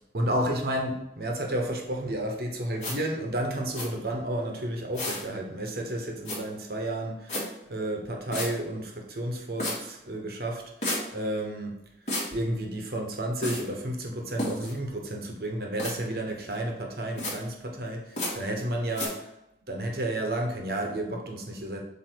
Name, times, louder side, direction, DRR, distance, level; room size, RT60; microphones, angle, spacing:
voice 1, 0.1-11.8 12.3-19.3 19.7-21.8, right 1 dB, 60° right, 2 dB, 1.1 m, -31 dB
sound 1, 2.8-2.9 3.7-3.9 4.9-5.2 6.2-6.4 7.3-7.4 8.3-8.5 9.6-9.7 10.8-11.0 12.1-12.3 13.4-13.6 14.4-14.7 15.8-15.9 17.2-17.3 18.2-18.3 18.9-19.1, left 1 dB, 40° left, 2.3 m, -30 dB
7.7 x 3.0 x 4.6 m, 0.85 s
head